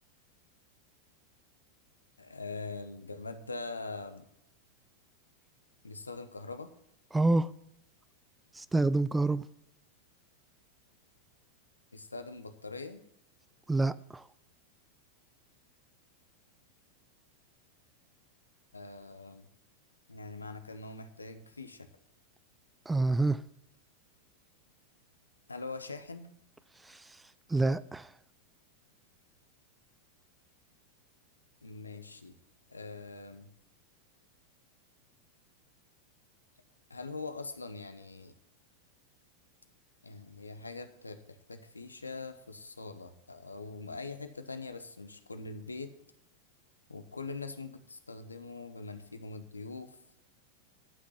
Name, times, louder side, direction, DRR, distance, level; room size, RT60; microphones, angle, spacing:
voice 1, 2.2-4.2 5.8-6.7 11.9-13.0 18.7-19.5 20.1-21.9 25.5-26.3 31.6-32.3 32.7-33.5 36.9-38.3 40.0-45.9 46.9-50.0, left 3 dB, 80° left, 1.0 m, -43 dB
voice 2, 7.1-7.5 8.5-9.5 13.7-14.3 22.9-23.4 26.8-27.2 27.5-28.1, right 2 dB, 10° right, 0.4 m, -28 dB
11.0 x 6.2 x 7.2 m
figure-of-eight pair, 90°, 0 cm